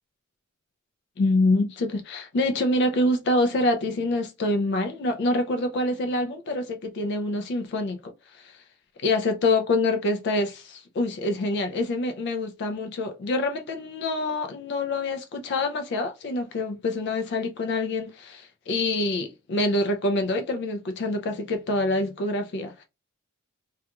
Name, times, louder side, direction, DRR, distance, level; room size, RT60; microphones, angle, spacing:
voice 1, 1.2-8.6 9.0-22.8, left 2 dB, 50° left, 0.3 m, -26 dB
2.8 x 2.3 x 2.2 m
head